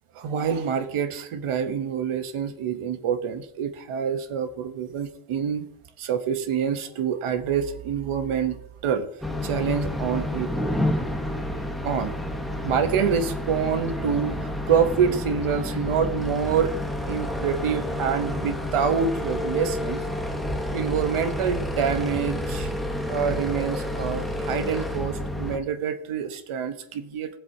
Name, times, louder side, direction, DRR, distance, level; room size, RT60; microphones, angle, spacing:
voice 1, 0.1-5.7 6.0-9.1 9.4-10.5 11.6-12.1 12.5-16.8 17.1-20.0 20.7-22.7 23.1-27.4, right 7 dB, 80° right, 9 dB, 1.0 m, -26 dB
sound 1, 9.2-25.6, left 1 dB, ahead, 0.9 m, -29 dB
16.0 x 7.6 x 2.7 m, 0.75 s
cardioid pair, 120°, 50 cm